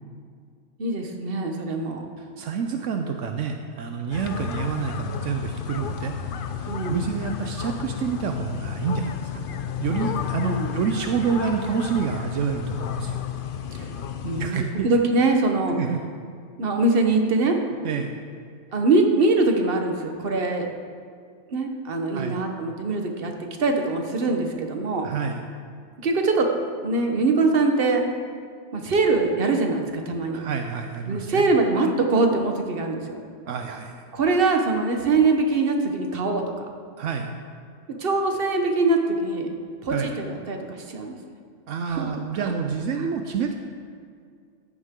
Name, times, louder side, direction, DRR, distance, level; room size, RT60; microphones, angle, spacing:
voice 1, 0.8-2.0 6.7-7.1 10.4-10.8 13.7-13.9 14.2-15.8 16.6-17.6 18.7-20.7 21.5-23.3 23.6-25.1 26.0-26.5 26.8-28.0 28.7-30.4 31.1-33.2 34.1-36.7 38.0-39.5 39.8-41.2 41.9-42.1 42.4-42.5 43.0-43.1, right 3 dB, 50° right, 3 dB, 1.3 m, -23 dB
voice 2, 2.2-6.2 6.6-9.0 9.8-13.2 14.4-14.9 15.8-16.0 17.8-18.1 22.1-22.4 25.0-25.4 30.3-31.4 33.5-34.0 37.0-37.3 39.9-40.1 41.7-43.5, right 6 dB, 75° right, 5 dB, 1.0 m, -28 dB
sound 1, 4.1-14.5, left 8 dB, 55° left, 0.7 m, -32 dB
14.5 x 9.8 x 3.7 m, 2.2 s
omnidirectional pair, 1.3 m